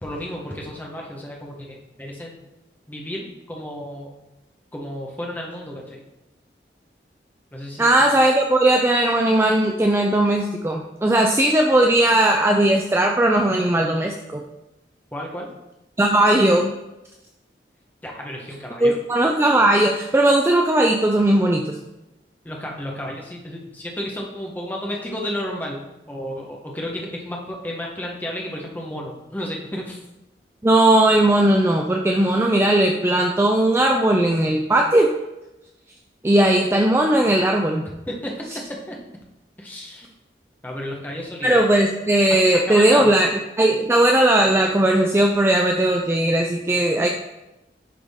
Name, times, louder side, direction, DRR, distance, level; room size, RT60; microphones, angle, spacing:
voice 1, 0.0-2.4 2.9-4.1 4.7-6.0 7.5-8.1 15.1-15.5 18.0-19.0 22.4-25.8 26.1-30.0 38.1-39.0 39.6-40.1 40.6-41.6 42.3-43.1 47.0-47.1, equal, 10° left, -1 dB, 0.9 m, -32 dB
voice 2, 7.8-14.4 16.0-16.7 18.8-21.8 30.6-35.1 36.2-37.9 41.4-43.3 43.6-47.1, right 1 dB, 15° right, 1 dB, 0.3 m, -18 dB
10.0 x 3.6 x 3.5 m, 0.96 s
head